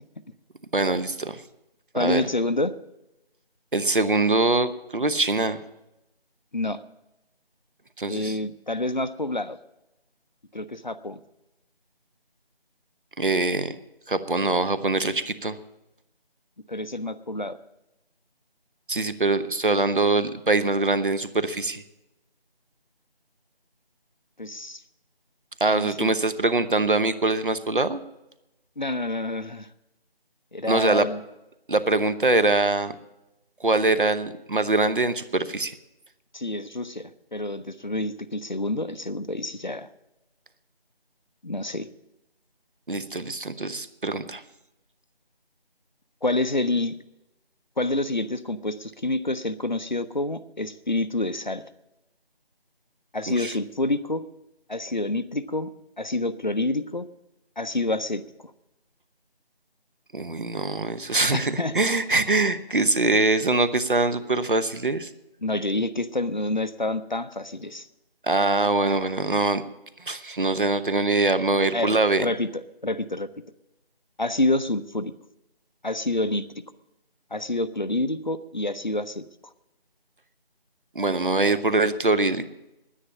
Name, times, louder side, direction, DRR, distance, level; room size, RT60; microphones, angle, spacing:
voice 1, 0.7-1.4 1.9-2.3 3.7-5.6 8.0-8.3 13.2-13.8 14.1-15.6 18.9-21.8 25.6-28.0 30.7-31.1 31.7-32.9 33.6-35.7 42.9-44.4 53.3-53.5 60.1-65.1 68.2-69.6 70.0-72.3 80.9-82.5, right 2 dB, 55° right, 13 dB, 0.9 m, -23 dB
voice 2, 1.9-2.7 6.5-6.8 8.1-9.6 10.5-11.2 16.7-17.6 24.4-24.8 25.7-26.1 28.8-29.7 30.5-31.2 36.3-39.9 41.4-41.9 46.2-46.9 47.8-51.6 53.1-54.2 54.7-55.7 56.0-57.1 57.6-58.5 61.3-61.8 65.4-67.9 71.7-73.3 74.2-75.1 75.8-76.5 77.3-79.2, left 2 dB, 50° left, 13 dB, 0.6 m, -28 dB
10.0 x 9.9 x 8.5 m, 0.93 s
figure-of-eight pair, 170°, 30 cm